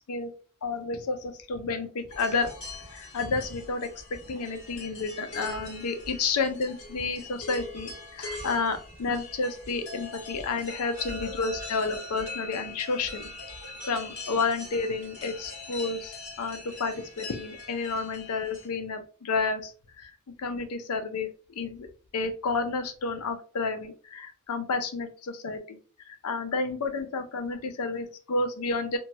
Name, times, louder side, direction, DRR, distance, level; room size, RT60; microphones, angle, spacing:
voice 1, 0.6-2.5 2.9-13.3 13.9-19.7 20.0-20.1 20.4-21.9 22.1-25.8 26.1-29.0, left 4 dB, 90° left, 8 dB, 0.5 m, -31 dB
sound 1, 2.1-18.7, left 2 dB, 50° left, 1.5 m, -42 dB
2.9 x 2.2 x 2.7 m, 0.39 s
head